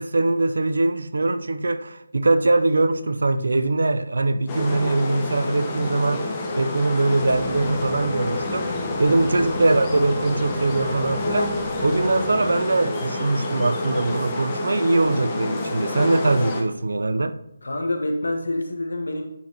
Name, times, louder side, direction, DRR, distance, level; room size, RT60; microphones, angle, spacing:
voice 1, 0.0-6.2 6.6-8.7 9.0-17.4, right 2 dB, 70° right, 0.5 m, -22 dB
sound 1, 4.5-16.6, left 2 dB, 20° left, 0.9 m, -28 dB
sound 2, 7.2-12.5, left 1 dB, 5° right, 0.8 m, -35 dB
voice 2, 17.6-19.3, left 1 dB, 75° left, 1.1 m, -27 dB
9.4 x 4.4 x 2.8 m
figure-of-eight pair, 155°, 0 cm